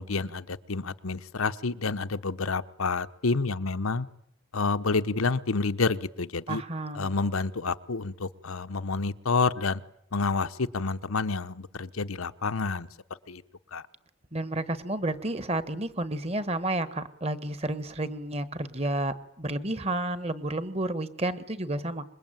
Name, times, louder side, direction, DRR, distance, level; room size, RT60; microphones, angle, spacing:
voice 1, 0.0-4.1 4.5-6.6 7.0-9.8 10.1-12.9 13.3-13.4 13.7-13.8, left 4 dB, 90° left, 11 dB, 1.0 m, -29 dB
voice 2, 6.5-7.1 14.3-22.0, right 1 dB, 30° right, 13 dB, 1.3 m, -31 dB
26.0 x 22.5 x 9.1 m, 0.77 s
head